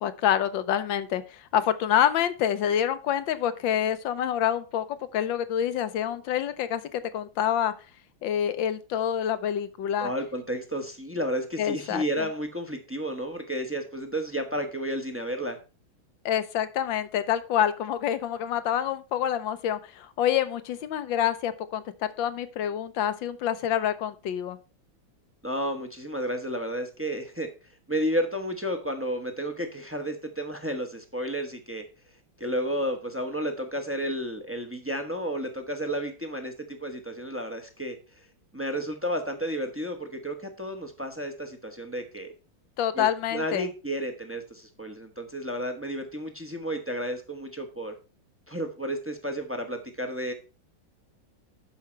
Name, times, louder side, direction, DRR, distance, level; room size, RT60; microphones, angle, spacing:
voice 1, 0.0-7.7 8.2-10.1 11.6-12.2 16.2-24.6 42.8-43.7, left 10 dB, 70° left, 12 dB, 1.4 m, -27 dB
voice 2, 10.0-15.6 25.4-27.5 27.9-31.8 32.4-38.0 38.5-42.3 42.9-43.1 43.3-47.9 48.5-50.3, equal, 10° right, 6 dB, 0.6 m, -32 dB
11.5 x 4.9 x 4.4 m, 0.33 s
omnidirectional pair, 2.2 m